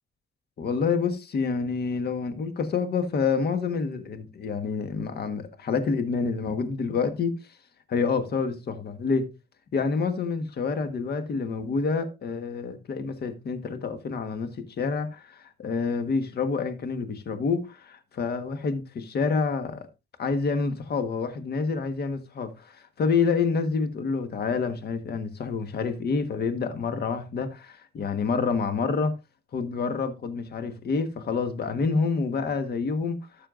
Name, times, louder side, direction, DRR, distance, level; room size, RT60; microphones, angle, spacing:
voice 1, 0.6-7.4 7.9-9.3 9.7-19.9 20.2-29.1 29.5-33.2, left 5 dB, 55° left, 1.4 m, -28 dB
13.0 x 6.6 x 2.6 m
cardioid pair, 90°, 20 cm